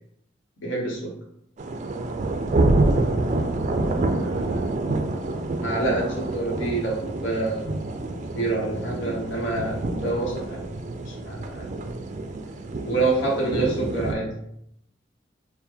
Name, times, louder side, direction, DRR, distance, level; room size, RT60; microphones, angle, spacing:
voice 1, 0.6-1.1 4.1-4.6 5.6-7.7 8.3-11.7 12.8-14.4, right 2 dB, 80° left, -3 dB, 0.9 m, -27 dB
sound 1, 1.6-14.1, right 2 dB, 40° right, 0.3 m, -27 dB
4.4 x 2.1 x 3.5 m, 0.73 s
head